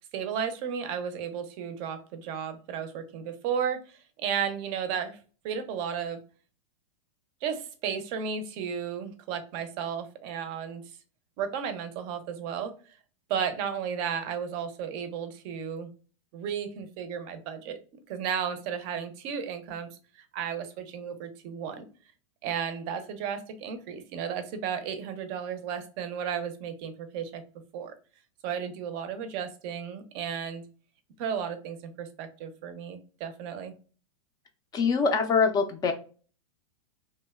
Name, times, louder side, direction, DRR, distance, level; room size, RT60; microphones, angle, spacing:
voice 1, 0.1-5.2 5.4-6.2 7.4-10.8 11.4-12.7 13.3-15.9 16.3-17.8 18.1-19.9 20.2-21.8 22.4-27.4 27.7-27.9 28.4-30.6 31.2-33.7, right 7 dB, 45° right, 9 dB, 0.5 m, -34 dB
voice 2, 34.7-35.9, left 5 dB, 20° left, 5 dB, 0.4 m, -24 dB
2.8 x 2.1 x 2.2 m, 0.37 s
hypercardioid pair, 125°, 18 cm